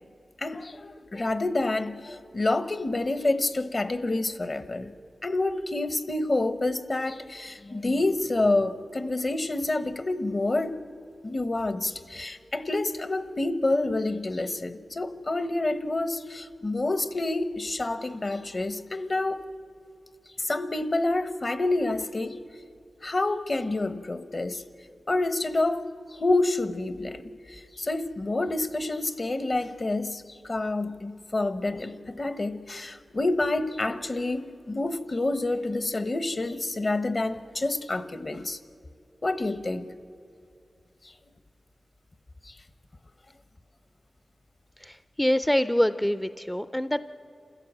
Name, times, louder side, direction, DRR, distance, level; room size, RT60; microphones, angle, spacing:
voice 1, 0.4-4.9 5.2-10.7 11.2-19.4 20.4-22.4 23.0-24.6 25.1-38.6 39.2-39.9 41.0-41.1 42.4-42.6, left 2 dB, 45° left, 11 dB, 1.1 m, -28 dB
voice 2, 44.8-47.0, equal, 10° left, 12 dB, 0.5 m, -25 dB
28.0 x 15.5 x 7.5 m, 2.5 s
cardioid pair, 55°, 0 cm